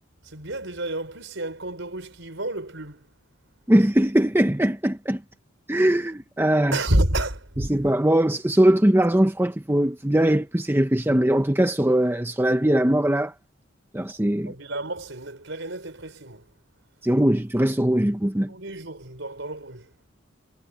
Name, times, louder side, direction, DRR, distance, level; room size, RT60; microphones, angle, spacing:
voice 1, 0.2-3.1 6.7-7.7 14.5-16.5 18.5-19.9, right 1 dB, 65° right, 5.5 m, -29 dB
voice 2, 3.7-5.2 5.7-6.8 7.7-13.3 13.9-14.5 17.0-18.5, right 1 dB, 10° right, 0.8 m, -21 dB
head